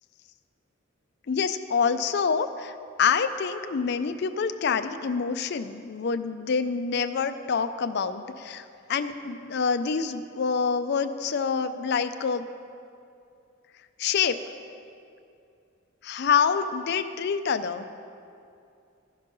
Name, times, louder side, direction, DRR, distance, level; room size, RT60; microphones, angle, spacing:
voice 1, 1.3-12.5 14.0-14.4 16.0-17.9, left 6 dB, 55° left, 10 dB, 0.4 m, -26 dB
15.5 x 5.3 x 5.4 m, 2.5 s
head